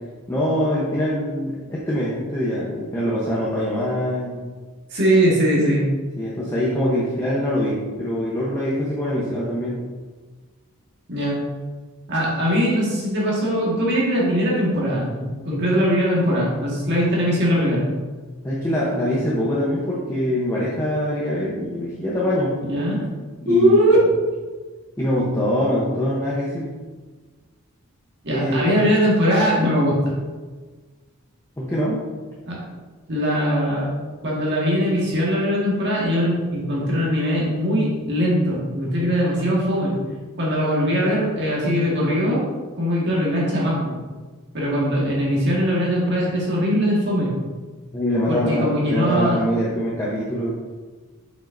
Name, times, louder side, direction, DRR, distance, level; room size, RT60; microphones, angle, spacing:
voice 1, 0.3-4.4 6.2-9.8 18.4-22.6 23.4-24.0 25.0-26.7 28.3-28.8 31.6-32.0 47.9-50.6, equal, 15° left, -7 dB, 0.8 m, -24 dB
voice 2, 4.9-5.9 11.1-11.4 12.1-17.9 22.6-23.1 23.5-24.0 28.2-30.1 32.5-32.6 33.1-33.9 34.2-39.9 40.4-42.5 42.8-43.9 44.5-47.3 48.3-49.4, equal, 50° right, -5 dB, 1.7 m, -21 dB
7.2 x 5.3 x 2.6 m, 1.4 s
head